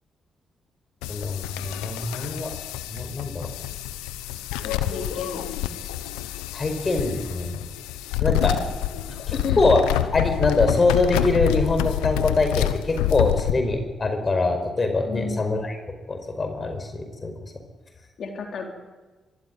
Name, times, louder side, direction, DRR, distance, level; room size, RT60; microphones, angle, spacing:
sound 1, 1.0-13.5, left 13 dB, 85° left, 1.1 m, -27 dB
voice 1, 1.1-2.5 2.9-3.5 6.5-7.6 8.2-8.6 9.6-9.8 10.1-15.7 16.1-17.3, left 3 dB, 40° left, 6 dB, 5.0 m, -23 dB
voice 2, 4.6-5.8 8.3-8.7 9.3-9.6 15.1-15.6 18.2-18.7, left 5 dB, 60° left, 2 dB, 4.0 m, -33 dB
24.5 x 14.5 x 9.6 m, 1.3 s
hypercardioid pair, 45°, 0 cm